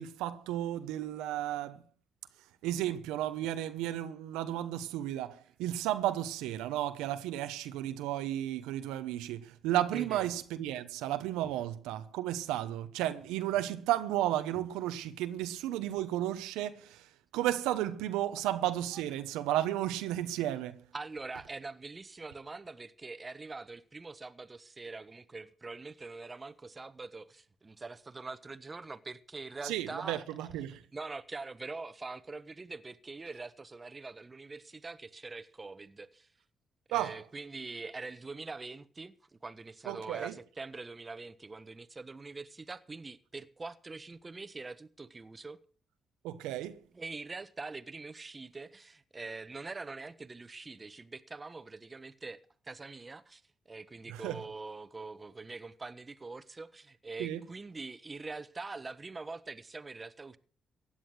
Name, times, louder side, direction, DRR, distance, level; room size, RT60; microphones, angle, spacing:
voice 1, 0.0-1.8 2.6-17.1 17.3-20.8 29.6-30.8 36.9-37.2 39.9-40.3 46.2-46.8 54.1-54.4 57.2-57.4, right 13 dB, 90° right, 0.9 m, -33 dB
voice 2, 9.9-10.3 18.9-19.0 20.9-30.2 30.7-36.3 36.9-45.6 46.9-52.4 52.6-53.4 53.7-60.4, right 3 dB, 30° right, 1.2 m, -44 dB
16.0 x 10.0 x 6.3 m
supercardioid pair, 55°, 0 cm